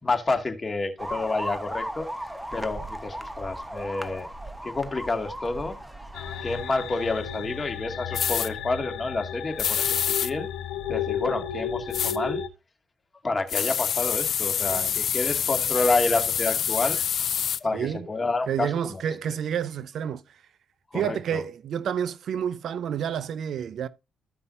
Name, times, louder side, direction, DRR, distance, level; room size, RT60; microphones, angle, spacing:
voice 1, 0.0-4.3 4.6-5.8 6.4-10.5 10.9-12.4 13.2-17.0 17.6-19.0 20.9-21.4, left 3 dB, 25° left, 2.2 m, -29 dB
sound 1, 1.0-7.4, equal, 5° right, 1.1 m, -36 dB
sound 2, 6.1-12.5, left 9 dB, 85° left, 1.2 m, -33 dB
sound 3, 8.1-8.5 9.6-10.3 11.9-12.2 13.5-17.6, left 8 dB, 60° left, 0.4 m, -26 dB
voice 2, 17.7-18.1 18.5-20.4 20.9-23.9, right 8 dB, 65° right, 0.6 m, -29 dB
14.5 x 5.4 x 2.7 m
cardioid pair, 90°, 0 cm